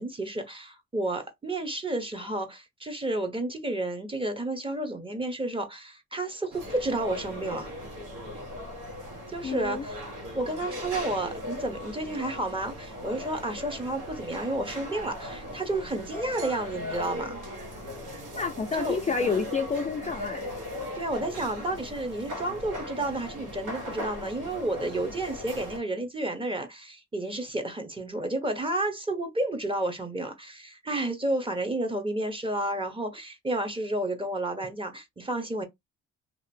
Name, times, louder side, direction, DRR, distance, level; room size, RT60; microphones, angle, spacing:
voice 1, 0.0-7.7 9.3-9.9 10.3-17.4 18.8-19.0 20.9-35.7, right 2 dB, 15° right, 0.8 m, -31 dB
sound 1, 6.5-25.8, left 1 dB, 85° right, 1.2 m, -38 dB
voice 2, 9.4-9.9 18.4-20.4, left 5 dB, 25° left, 0.4 m, -29 dB
2.8 x 2.5 x 2.6 m
cardioid pair, 90°, 30 cm